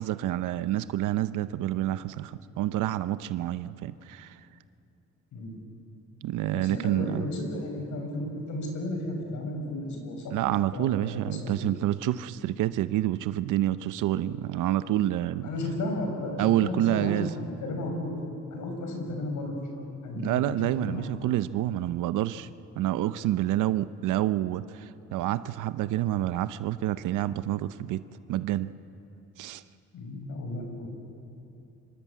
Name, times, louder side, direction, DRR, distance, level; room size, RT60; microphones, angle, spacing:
voice 1, 0.0-4.4 6.2-7.3 10.3-15.5 16.4-17.3 20.1-22.5 22.8-28.0 28.3-28.7 29.4-29.6, right 13 dB, 85° right, 13 dB, 0.7 m, -28 dB
voice 2, 6.5-11.7 15.4-18.1 18.5-20.3 20.8-21.3 29.9-30.9, left 1 dB, 75° left, 3 dB, 6.3 m, -34 dB
26.0 x 22.5 x 8.4 m, 2.7 s
cardioid pair, 90°, 30 cm